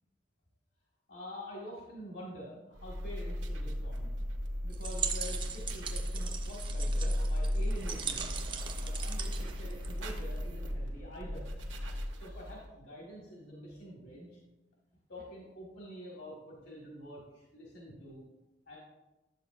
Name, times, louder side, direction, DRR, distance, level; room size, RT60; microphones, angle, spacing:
voice 1, 1.1-4.1 4.6-8.4 8.7-11.5 12.2-14.4 15.1-18.2 18.7-18.8, equal, 80° left, -4 dB, 1.7 m, -47 dB
sound 1, 2.7-12.7, equal, 85° right, 1.0 m, -35 dB
sound 2, 4.7-10.4, right 6 dB, 25° right, 0.5 m, -40 dB
10.0 x 7.4 x 2.5 m, 1.1 s
head